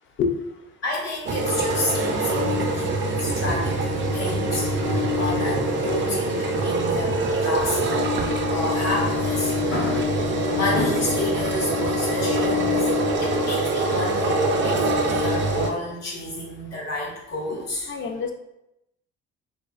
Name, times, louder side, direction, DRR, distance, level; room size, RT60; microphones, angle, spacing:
voice 1, 0.8-10.1 10.5-12.9 13.2-17.9, left 1 dB, 60° left, -3 dB, 1.1 m, -30 dB
sound 1, 1.3-15.7, right 1 dB, 40° right, 0.4 m, -24 dB
voice 2, 17.9-18.3, left 6 dB, 40° left, 5 dB, 0.4 m, -25 dB
2.4 x 2.2 x 2.3 m, 0.86 s
cardioid pair, 90°, 30 cm